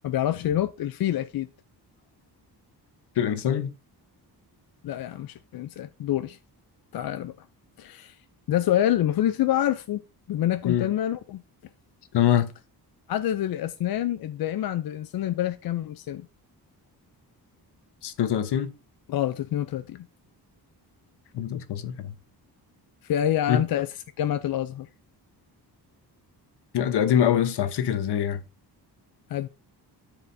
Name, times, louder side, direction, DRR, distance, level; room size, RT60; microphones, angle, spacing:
voice 1, 0.0-1.5 4.8-6.4 6.9-7.5 7.8-8.2 8.5-10.0 10.3-11.4 13.1-16.3 19.1-20.1 23.0-24.9 29.3-29.5, left 11 dB, 65° left, 0.5 m, -27 dB
voice 2, 3.2-3.7 10.6-10.9 12.1-12.5 18.0-18.7 21.3-22.1 23.5-23.6 26.7-28.4, left 9 dB, 80° left, 1.0 m, -24 dB
13.0 x 4.9 x 2.6 m
wide cardioid pair, 160°, 40 cm